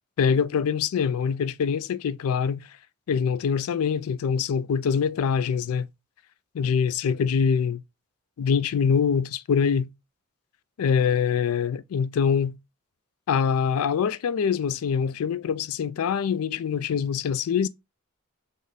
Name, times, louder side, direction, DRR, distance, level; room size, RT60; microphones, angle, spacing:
voice 1, 0.2-2.6 3.1-5.9 6.5-7.8 8.4-9.9 10.8-12.6 13.3-17.7, left 6 dB, 80° left, 0.4 m, -24 dB
4.0 x 2.6 x 3.4 m
head